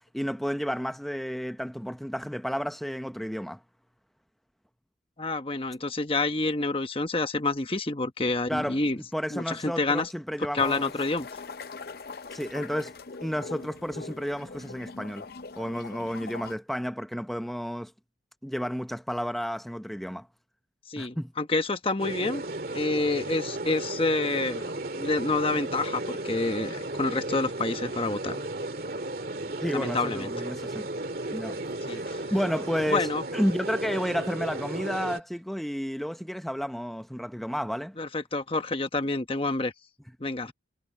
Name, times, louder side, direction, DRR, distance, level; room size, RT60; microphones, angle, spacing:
voice 1, 0.1-3.6 8.5-8.8 9.1-10.9 12.3-12.9 13.2-15.3 15.6-17.9 18.4-20.3 21.0-21.3 29.6-30.9 31.3-31.5 31.9-33.1 33.3-37.9, equal, ahead, 0.8 m, -31 dB
voice 2, 5.2-9.0 9.3-10.1 10.4-11.3 20.9-22.4 22.7-28.4 29.7-30.3 31.9-32.2 32.9-33.2 38.0-39.7 40.2-40.5, left 3 dB, 30° left, 1.1 m, -28 dB
sound 1, 10.6-16.5, left 4 dB, 55° left, 0.6 m, -42 dB
sound 2, 22.0-35.2, right 2 dB, 50° right, 2.3 m, -34 dB
head